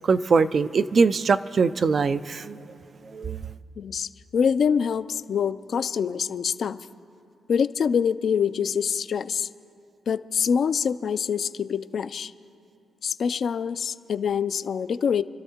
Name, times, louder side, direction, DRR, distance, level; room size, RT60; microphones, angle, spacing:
voice 1, 0.1-2.6 3.1-3.4, right 4 dB, 50° right, 12 dB, 0.4 m, -22 dB
voice 2, 3.8-6.8 7.5-9.5 10.1-12.3 13.0-15.2, left 7 dB, 65° left, 13 dB, 0.3 m, -25 dB
29.0 x 12.5 x 2.9 m, 2.6 s
cardioid pair, 75°, 0 cm